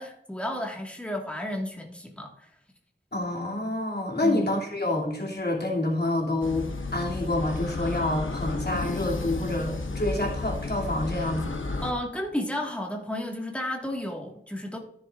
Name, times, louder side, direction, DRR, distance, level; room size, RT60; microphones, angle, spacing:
voice 1, 0.0-2.5 4.2-4.5 11.8-14.8, left 1 dB, 5° left, 0 dB, 1.6 m, -32 dB
voice 2, 3.1-11.6, left 1 dB, 55° left, -2 dB, 2.6 m, -28 dB
sound 1, 6.4-11.9, left 3 dB, 85° left, 0.9 m, -32 dB
14.0 x 7.1 x 2.4 m, 0.77 s
wide cardioid pair, 50°, 20 cm